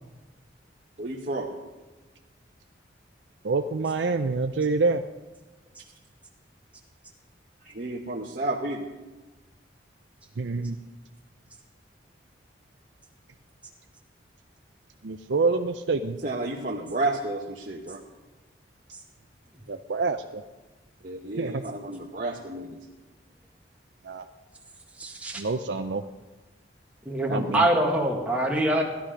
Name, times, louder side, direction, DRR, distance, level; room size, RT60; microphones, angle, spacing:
voice 1, 1.0-1.5 7.6-8.9 16.2-18.0 21.0-22.8, right 2 dB, 50° right, -2 dB, 1.1 m, -31 dB
voice 2, 3.4-5.0 10.4-10.8 15.0-16.2 19.7-20.4 21.4-21.6 24.0-24.3 25.3-26.0 27.3-27.7, right 3 dB, 80° right, 7 dB, 0.5 m, -27 dB
voice 3, 25.0-25.4 27.1-28.8, right 1 dB, 10° right, -1 dB, 1.8 m, -24 dB
16.0 x 11.5 x 5.1 m, 1.2 s
head